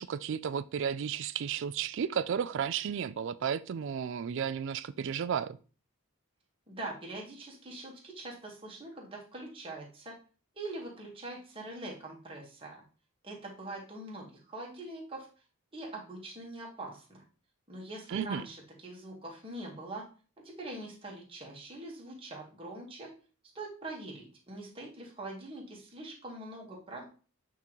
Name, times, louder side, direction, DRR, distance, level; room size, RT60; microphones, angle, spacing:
voice 1, 0.0-5.6 18.1-18.5, right 7 dB, 60° right, 0.3 m, -33 dB
voice 2, 6.7-10.2 10.5-12.8 13.2-15.3 15.7-17.2 17.7-20.1 20.4-23.1 23.5-27.0, right 2 dB, 25° right, 1.5 m, -43 dB
8.2 x 3.7 x 3.1 m
head